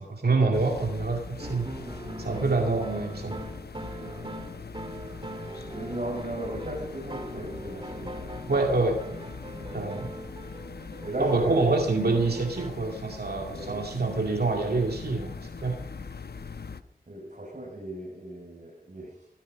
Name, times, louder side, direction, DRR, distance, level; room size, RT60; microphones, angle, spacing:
voice 1, 0.0-1.7 2.2-3.4 8.5-9.0 9.7-10.1 11.2-15.8, right 3 dB, 75° right, 2 dB, 2.2 m, -26 dB
sound 1, 0.5-16.8, left 5 dB, 85° left, 1.0 m, -41 dB
sound 2, 1.4-12.7, right 1 dB, 30° right, 2.1 m, -41 dB
voice 2, 4.0-4.3 5.7-8.2 9.7-9.9 11.0-11.6 13.5-13.8 17.1-19.1, right 1 dB, 50° right, -3 dB, 6.2 m, -36 dB
17.5 x 15.5 x 5.3 m, 0.83 s
wide cardioid pair, 45°, 16 cm